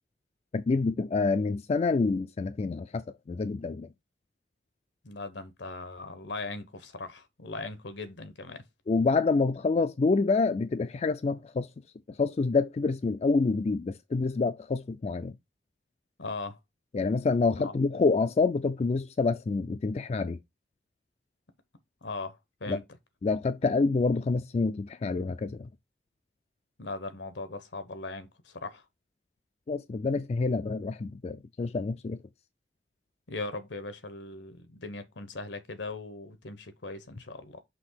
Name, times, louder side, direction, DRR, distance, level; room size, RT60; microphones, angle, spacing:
voice 1, 0.5-3.9 7.6-7.7 8.9-11.7 12.2-15.3 16.9-20.4 22.7-22.8 23.2-25.7 29.7-32.2, left 4 dB, 35° left, 0.3 m, -27 dB
voice 2, 5.0-8.6 16.2-16.6 17.5-17.7 22.0-22.8 26.8-28.8 33.3-37.6, left 3 dB, 80° left, 1.1 m, -39 dB
6.1 x 2.9 x 5.6 m
head